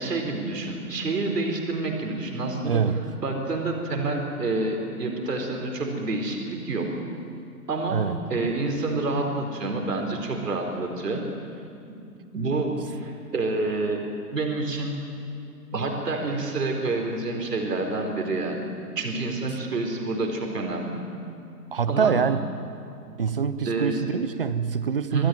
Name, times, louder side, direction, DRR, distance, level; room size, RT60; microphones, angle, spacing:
voice 1, 0.0-2.8 3.2-6.9 7.7-8.0 8.3-11.2 12.3-14.0 14.3-15.0 15.7-18.6 19.0-21.0 21.9-22.2 23.6-24.0 25.1-25.3, right 3 dB, 75° right, 2 dB, 4.5 m, -28 dB
voice 2, 2.7-3.0 7.9-8.2 21.7-22.4 23.2-25.3, right 6 dB, 35° right, 13 dB, 0.8 m, -25 dB
25.5 x 15.0 x 9.3 m, 2.5 s
hypercardioid pair, 165°, 48 cm